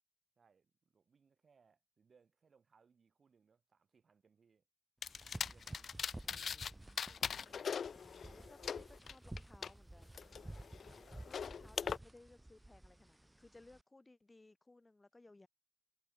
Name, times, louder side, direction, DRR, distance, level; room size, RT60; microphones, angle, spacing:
voice 1, 0.4-4.7 5.4-6.0 6.8-8.7 10.2-11.4, right 5 dB, 55° right, 5.2 m, -71 dB
sound 1, 5.0-6.7 7.0-9.7 10.1-12.0, left 7 dB, 70° left, 0.6 m, -41 dB
sound 2, 5.0-13.8, right 1 dB, 15° right, 0.3 m, -53 dB
voice 2, 6.2-6.8 7.9-10.3 11.2-15.5, left 2 dB, 25° left, 2.7 m, -62 dB
cardioid pair, 75°, 0 cm